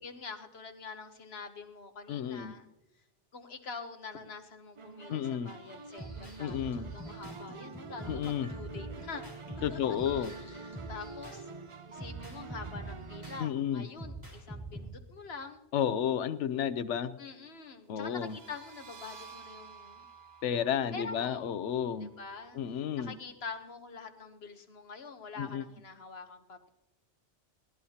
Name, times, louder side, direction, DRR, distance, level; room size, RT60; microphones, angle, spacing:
voice 1, 0.0-2.6 3.3-9.2 9.7-9.8 10.2-11.5 11.9-15.6 17.2-20.0 20.9-21.5 22.0-22.6 23.0-26.7, left 4 dB, 60° left, 7 dB, 1.3 m, -45 dB
voice 2, 2.1-2.5 5.1-5.5 6.4-6.9 8.1-8.5 9.6-10.3 13.4-13.9 15.7-17.2 17.9-18.4 20.4-22.1 22.5-23.2 25.4-25.6, left 9 dB, 85° left, 13 dB, 1.0 m, -32 dB
sound 1, 4.8-13.5, right 4 dB, 40° right, 0.4 m, -47 dB
sound 2, 5.5-11.5 12.0-13.4 14.0-14.8, right 2 dB, 15° right, 3.7 m, -44 dB
sound 3, 18.1-23.5, right 5 dB, 60° right, 1.1 m, -54 dB
22.0 x 17.5 x 2.8 m, 0.95 s
omnidirectional pair, 1.2 m